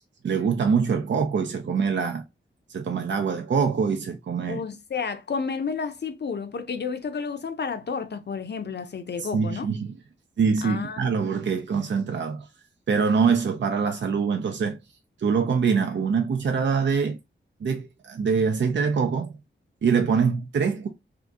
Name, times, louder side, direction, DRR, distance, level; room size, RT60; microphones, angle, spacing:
voice 1, 0.2-2.2 2.7-4.6 9.2-9.9 10.4-12.5 12.9-14.8 15.2-17.2 17.6-19.3 19.8-20.9, right 5 dB, 65° right, 0.5 m, -24 dB
voice 2, 4.5-9.7 10.6-11.0, left 5 dB, 55° left, 0.5 m, -31 dB
2.8 x 2.4 x 3.5 m
wide cardioid pair, 110°, 21 cm